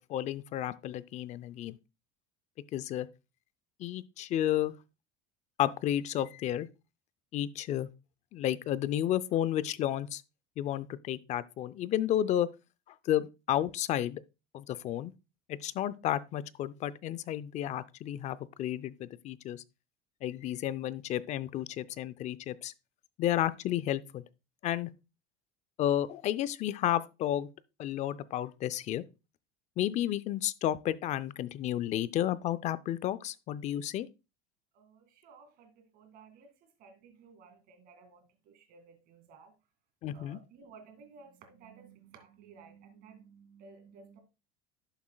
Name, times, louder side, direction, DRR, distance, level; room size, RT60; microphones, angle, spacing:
voice 1, 0.0-1.8 2.7-3.1 3.8-4.7 5.6-6.7 7.3-7.9 8.3-10.2 10.6-12.5 13.0-14.2 14.5-15.1 15.5-19.6 20.2-22.7 23.2-24.2 24.6-24.9 25.8-27.5 27.8-29.0 29.8-34.1 40.0-40.4, left 12 dB, 40° left, 0.5 m, -32 dB
voice 2, 34.7-39.5 40.1-44.2, right 5 dB, 50° right, 2.2 m, -56 dB
11.5 x 7.1 x 2.2 m
cardioid pair, 145°, 19 cm